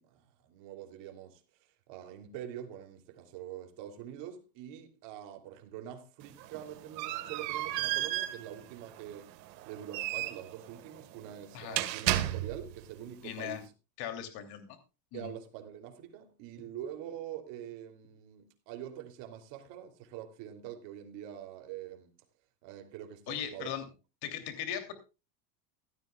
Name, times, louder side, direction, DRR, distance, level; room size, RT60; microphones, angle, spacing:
voice 1, 0.0-1.4 1.9-9.3 9.6-13.7 15.1-22.1 22.6-23.7, right 10 dB, 55° right, 3.1 m, -45 dB
sound 1, 6.2-12.8, right 14 dB, 85° right, 1.7 m, -34 dB
voice 2, 13.2-13.6 14.0-14.8 15.1-15.3 23.3-23.8 24.2-24.9, left 10 dB, 50° left, 3.0 m, -38 dB
16.5 x 13.0 x 2.3 m
supercardioid pair, 130°, 50 cm